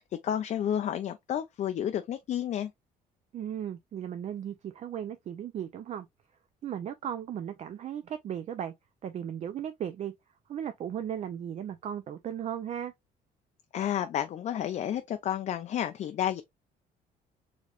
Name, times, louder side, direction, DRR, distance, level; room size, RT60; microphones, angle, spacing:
voice 1, 0.0-2.7 13.7-16.4, left 10 dB, 45° left, 0.4 m, -31 dB
voice 2, 3.3-6.1 6.6-8.7 9.0-10.1 10.5-12.9, right 9 dB, 40° right, 0.4 m, -36 dB
4.2 x 3.0 x 2.4 m
cardioid pair, 110°, 17 cm